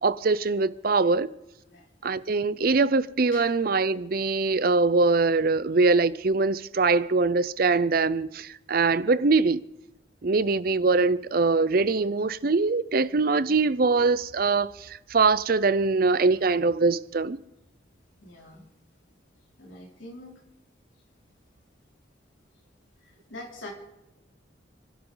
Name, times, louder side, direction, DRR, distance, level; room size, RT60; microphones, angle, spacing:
voice 1, 0.0-1.3 2.0-9.6 10.2-17.4, right 3 dB, 50° right, 0.5 m, -23 dB
voice 2, 18.2-18.7 19.6-20.4 23.3-23.7, left 2 dB, 85° left, 3.3 m, -43 dB
30.0 x 12.0 x 3.9 m
head